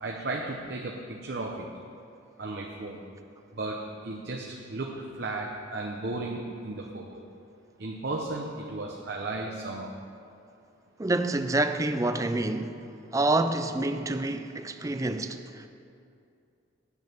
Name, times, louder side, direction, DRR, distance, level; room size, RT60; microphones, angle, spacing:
voice 1, 0.0-1.7 2.4-3.0 3.6-7.1 7.8-10.0, right 2 dB, 55° right, 0.8 m, -35 dB
voice 2, 11.0-12.8 13.1-15.7, right 2 dB, 15° right, 0.4 m, -27 dB
9.7 x 6.3 x 8.6 m
head